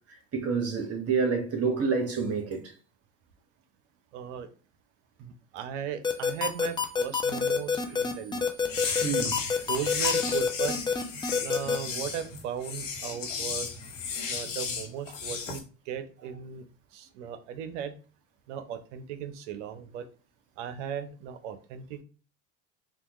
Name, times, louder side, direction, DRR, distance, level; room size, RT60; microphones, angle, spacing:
voice 1, 0.0-2.7 7.9-8.0 9.0-9.4 14.1-14.3, right 5 dB, 40° right, 1.3 m, -29 dB
voice 2, 4.1-4.5 5.2-8.5 9.7-10.7 11.4-13.8 14.3-16.7 16.9-17.9 18.5-20.0 20.6-22.0, right 8 dB, 75° right, 0.7 m, -37 dB
sound 1, 6.0-11.8, left 5 dB, 10° left, 0.5 m, -26 dB
sound 2, 8.6-15.6, left 6 dB, 80° left, 1.1 m, -34 dB
3.5 x 2.4 x 3.0 m
hypercardioid pair, 75°, 37 cm